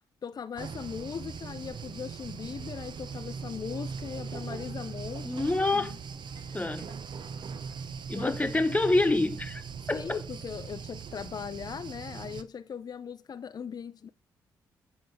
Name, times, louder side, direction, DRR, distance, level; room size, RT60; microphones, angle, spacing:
voice 1, 0.2-5.3 5.6-5.9 8.1-8.4 9.9-14.1, left 7 dB, 45° left, 0.5 m, -39 dB
sound 1, 0.6-12.4, right 6 dB, 55° right, 0.9 m, -40 dB
sound 2, 3.5-8.9, right 3 dB, 80° right, 2.2 m, -53 dB
voice 2, 5.2-5.9 6.5-6.9 8.1-10.2, left 2 dB, 15° left, 1.3 m, -27 dB
8.9 x 5.0 x 4.9 m
supercardioid pair, 50°, 9 cm